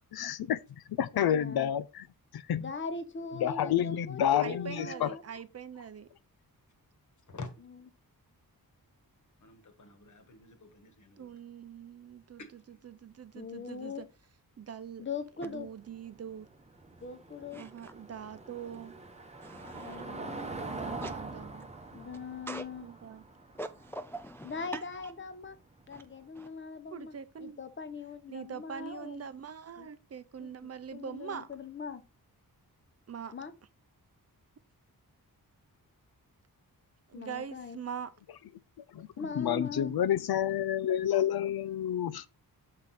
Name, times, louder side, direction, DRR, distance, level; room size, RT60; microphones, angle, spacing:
voice 1, 0.1-0.6 1.0-2.1 2.3-2.7 3.4-5.1 38.9-42.2, left 10 dB, 90° left, 0.6 m, -29 dB
voice 2, 1.1-1.7 2.6-5.2 13.3-14.1 15.0-15.7 17.0-17.6 19.7-20.5 21.9-22.9 24.4-25.6 25.9-27.1 27.4-29.2 29.8-29.9 30.4-32.0 33.3-33.5 37.1-37.8 39.2-39.9, left 4 dB, 30° left, 0.9 m, -41 dB
voice 3, 4.4-6.1 11.2-12.4 12.8-14.0 14.6-15.0 15.4-16.5 17.6-18.9 20.0-21.7 22.8-23.2 26.9-27.6 28.3-31.5 33.1-33.3 37.1-38.1, right 7 dB, 45° right, 0.6 m, -43 dB
voice 4, 9.4-11.3 12.4-12.8, left 3 dB, 55° left, 1.4 m, -47 dB
Car passing by / Engine, 15.5-26.1, right 3 dB, 20° right, 0.9 m, -44 dB
voice 5, 17.5-17.9 19.4-20.0 21.0-21.1 22.5-22.6 23.6-24.7 25.9-26.0 26.4-26.5, right 1 dB, 5° left, 0.3 m, -43 dB
6.5 x 4.9 x 4.1 m
wide cardioid pair, 165°, 36 cm